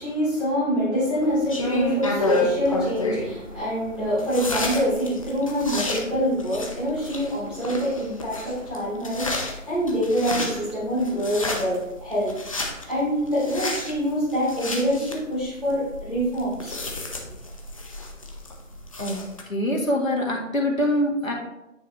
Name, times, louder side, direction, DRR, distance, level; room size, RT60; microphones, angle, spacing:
voice 1, 0.0-16.8, equal, ahead, -13 dB, 2.5 m, -25 dB
sound 1, 1.2-19.4, left 2 dB, 25° left, 0.7 m, -31 dB
voice 2, 19.5-21.3, left 1 dB, 85° left, 0 dB, 2.0 m, -24 dB
9.2 x 4.5 x 2.8 m, 0.91 s
figure-of-eight pair, 155°, 39 cm